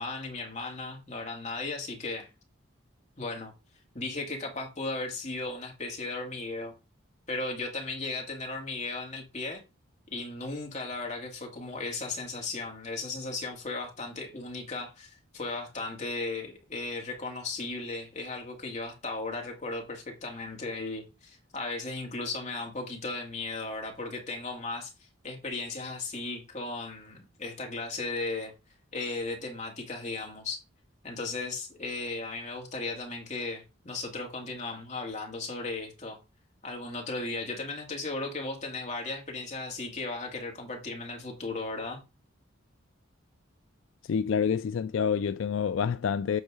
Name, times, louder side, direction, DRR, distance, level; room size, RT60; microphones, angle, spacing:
voice 1, 0.0-2.3 3.2-3.5 3.9-6.7 7.3-9.6 10.1-24.9 25.2-28.5 28.9-30.6 31.0-36.2 36.6-42.0, left 3 dB, 35° left, 2.1 m, -36 dB
voice 2, 44.0-46.4, left 7 dB, 65° left, 0.3 m, -27 dB
8.0 x 4.5 x 4.8 m
head